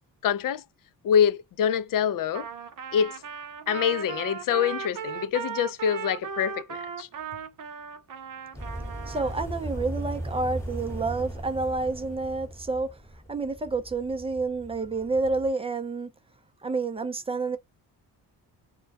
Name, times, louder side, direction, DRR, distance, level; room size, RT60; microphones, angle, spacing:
voice 1, 0.2-0.6 1.0-2.5 2.9-3.2 3.7-7.1, left 8 dB, 55° left, 0.5 m, -25 dB
Trumpet, 2.3-9.4, right 7 dB, 50° right, 0.7 m, -37 dB
sound 1, 8.5-15.5, right 1 dB, 5° left, 1.0 m, -38 dB
voice 2, 9.1-13.0 13.3-16.1 16.6-17.6, right 3 dB, 15° right, 0.4 m, -29 dB
2.2 x 2.1 x 2.7 m
cardioid pair, 65°, 41 cm